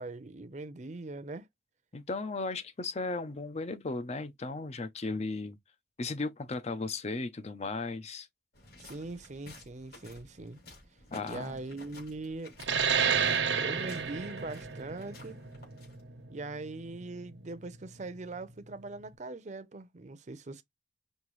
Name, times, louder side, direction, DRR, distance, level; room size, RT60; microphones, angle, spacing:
voice 1, 0.0-1.5 8.8-10.6 11.2-12.5 13.6-15.4 16.3-20.6, right 2 dB, 40° right, 0.6 m, -41 dB
voice 2, 1.9-5.6 6.0-8.3 11.1-11.6, left 3 dB, 35° left, 0.6 m, -36 dB
sound 1, 8.5-16.2, left 2 dB, 60° left, 3.0 m, -53 dB
sound 2, 12.6-17.7, right 6 dB, 90° right, 1.0 m, -31 dB
5.5 x 2.7 x 3.1 m
head